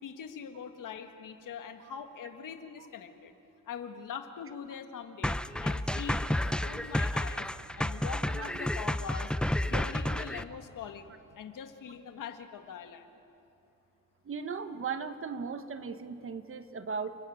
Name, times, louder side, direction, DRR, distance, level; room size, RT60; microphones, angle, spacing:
voice 1, 0.0-3.3 3.7-7.5 7.8-9.3 9.7-13.1, left 7 dB, 85° left, 6 dB, 1.8 m, -42 dB
sound 1, 5.2-10.4, left 1 dB, 5° left, 0.5 m, -31 dB
voice 2, 14.2-17.2, right 5 dB, 45° right, 9 dB, 1.2 m, -37 dB
29.5 x 16.0 x 9.3 m, 2.8 s
wide cardioid pair, 130°, 31 cm